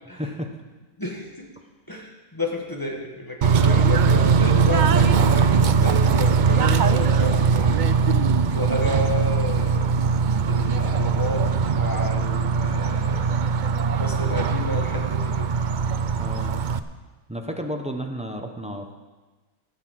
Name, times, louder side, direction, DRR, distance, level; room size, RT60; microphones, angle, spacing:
voice 1, 0.1-0.5 16.2-16.5 17.3-19.0, equal, 5° right, 4 dB, 0.7 m, -32 dB
voice 2, 1.0-1.5 1.9-7.9 8.5-10.0 10.4-13.3 14.0-15.5, left 1 dB, 15° left, 0 dB, 1.6 m, -31 dB
Bird / Train, 3.4-16.8, right 5 dB, 80° right, 0.4 m, -20 dB
16.5 x 6.3 x 7.7 m, 1.3 s
omnidirectional pair, 1.6 m